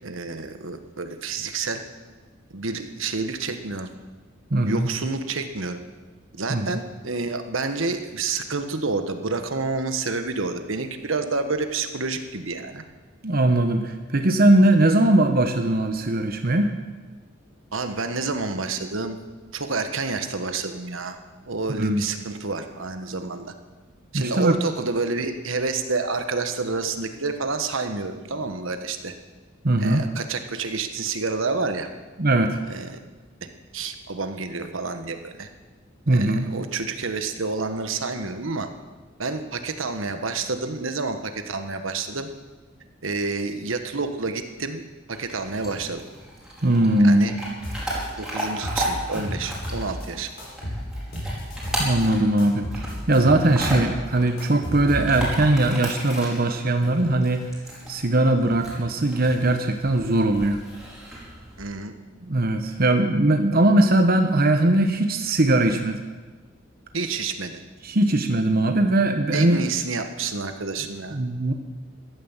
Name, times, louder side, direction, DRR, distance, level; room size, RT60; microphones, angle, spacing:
voice 1, 0.0-1.8 2.5-3.9 4.6-5.8 6.3-12.8 17.7-19.2 19.5-21.2 21.5-23.5 24.1-29.1 29.8-31.9 32.7-33.0 33.7-35.5 36.1-38.7 39.2-42.3 43.0-44.8 45.1-46.0 47.0-47.3 48.2-50.3 61.6-61.9 66.9-67.6 69.3-71.2, right 3 dB, 75° right, 7 dB, 1.4 m, -29 dB
voice 2, 4.5-4.9 6.5-6.7 13.2-16.7 21.7-22.0 24.1-24.6 29.6-30.0 32.2-32.6 36.1-36.5 46.6-47.4 51.8-57.4 57.9-60.6 62.2-66.0 67.8-69.6 71.1-71.5, right 1 dB, 45° right, 6 dB, 1.0 m, -20 dB
Chewing mastication / Dog, 45.1-61.6, right 1 dB, 5° right, 4.7 m, -35 dB
sound 1, 47.6-48.1 48.4-50.1 50.4-52.1 52.4-53.9 54.1-55.6, equal, 50° left, 7.1 m, -32 dB
15.5 x 12.5 x 7.3 m, 1.3 s
head